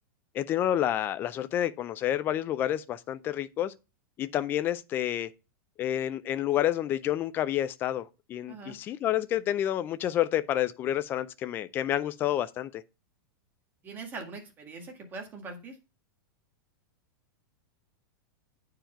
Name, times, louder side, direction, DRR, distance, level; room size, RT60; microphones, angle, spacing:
voice 1, 0.3-3.7 4.2-5.3 5.8-12.8, left 11 dB, 20° left, 0.4 m, -29 dB
voice 2, 8.5-8.8 13.8-15.8, right 3 dB, 15° right, 1.8 m, -42 dB
9.0 x 4.7 x 4.4 m
supercardioid pair, 165°, 12 cm